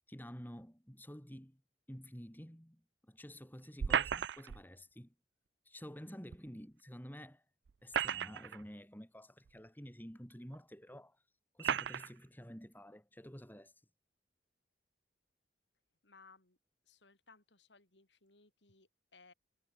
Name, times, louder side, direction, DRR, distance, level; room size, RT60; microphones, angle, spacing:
voice 1, 0.1-1.6 1.9-5.1 5.7-7.4 7.8-11.2 11.5-13.7, equal, 10° left, 5.9 m, -50 dB
sound 1, 3.8-4.6 6.3-6.4 7.7-8.6 9.5-9.6 10.5-10.6 11.6-12.1, right 8 dB, 70° right, 0.4 m, -34 dB
voice 2, 16.0-16.6 16.8-19.3, left 4 dB, 80° left, 5.1 m, -63 dB
head